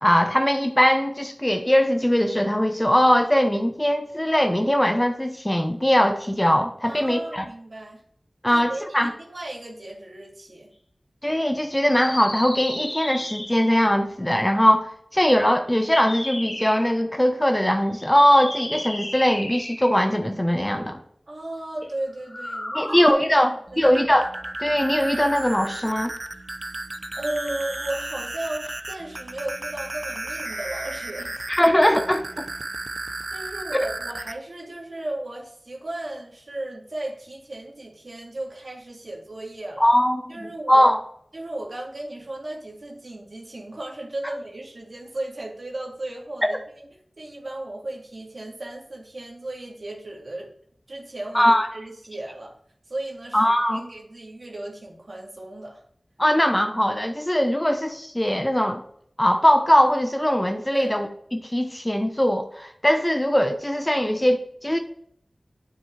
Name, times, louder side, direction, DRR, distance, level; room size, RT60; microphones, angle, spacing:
voice 1, 0.0-7.4 8.4-9.1 11.2-20.9 22.7-24.3 24.6-26.1 31.5-32.4 33.7-33.8 39.8-41.0 46.4-46.5 51.3-51.7 53.3-53.9 56.2-58.8 59.2-64.8, equal, 20° left, 6 dB, 1.0 m, -21 dB
voice 2, 6.8-8.0 8.5-10.7 21.3-23.0 23.4-23.9 27.1-31.5 33.3-39.9 40.3-40.9 41.3-46.6 47.2-50.5 50.9-52.5 52.9-53.4 53.7-55.8 60.7-60.9, right 1 dB, 75° right, -2 dB, 2.3 m, -35 dB
sound 1, 11.7-13.9 15.9-16.9 18.0-20.1 22.2-23.1, left 1 dB, 40° left, 2.1 m, -34 dB
sound 2, 23.7-34.3, right 2 dB, 50° right, 0.7 m, -34 dB
9.2 x 7.8 x 3.4 m, 0.65 s
wide cardioid pair, 45°, 0 cm